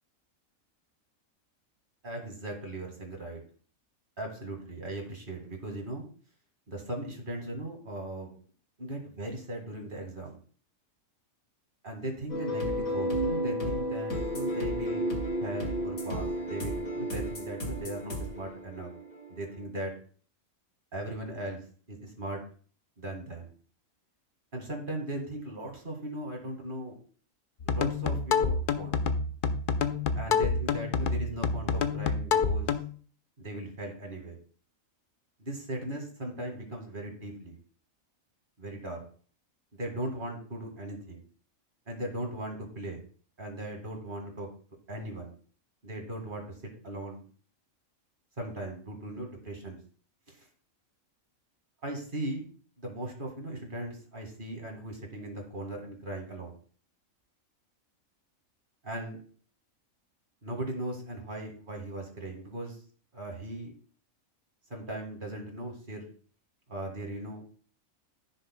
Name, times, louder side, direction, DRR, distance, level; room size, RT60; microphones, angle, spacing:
voice 1, 2.0-3.4 4.2-6.1 6.7-8.3 8.8-10.4 11.8-15.1 15.4-18.9 19.3-19.9 20.9-21.6 21.9-22.4 23.0-23.5 24.5-26.9 27.6-28.9 30.2-32.7 33.4-34.4 35.4-37.6 38.6-39.0 39.8-41.2 41.9-43.0 43.4-44.5 44.9-45.3 45.8-47.2 48.4-49.8 50.3-50.5 51.8-52.5 52.8-56.5 58.8-59.2 60.4-62.8 63.1-63.7 64.7-66.1 66.7-67.4, right 1 dB, 40° right, 1 dB, 2.1 m, -38 dB
sound 1, 12.3-19.6, equal, 80° left, 2.4 m, -32 dB
sound 2, 27.6-32.9, left 5 dB, 55° left, 0.6 m, -28 dB
15.0 x 6.5 x 2.2 m, 0.44 s
omnidirectional pair, 1.4 m